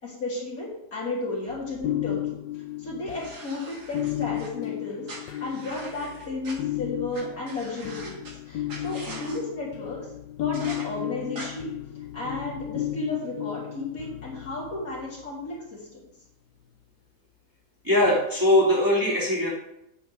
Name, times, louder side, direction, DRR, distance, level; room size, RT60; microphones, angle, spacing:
voice 1, 0.0-2.4 2.8-5.1 5.4-8.1 8.5-10.0 10.4-11.7 12.1-16.0, left 2 dB, 60° left, -6 dB, 4.0 m, -33 dB
sound 1, 1.5-15.3 18.0-18.3, left 14 dB, 80° left, 1.3 m, -34 dB
sound 2, 3.1-4.5 5.1-6.5 7.1-7.2 7.5-8.3 8.7-9.4 10.5-10.8 11.3-11.5, right 2 dB, 75° right, 2.8 m, -42 dB
voice 2, 17.8-19.5, left 1 dB, 10° right, -7 dB, 2.9 m, -21 dB
9.7 x 9.5 x 3.5 m, 0.84 s
omnidirectional pair, 1.7 m